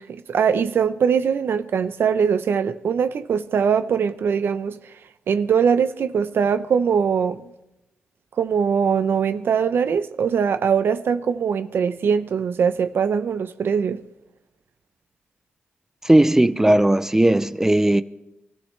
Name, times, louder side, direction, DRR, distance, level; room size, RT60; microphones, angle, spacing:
voice 1, 0.0-4.8 5.3-7.4 8.4-14.0, right 7 dB, 65° right, 0.7 m, -21 dB
voice 2, 16.0-18.0, right 1 dB, 10° right, 0.5 m, -17 dB
25.0 x 14.5 x 3.3 m
cardioid pair, 90°, 4 cm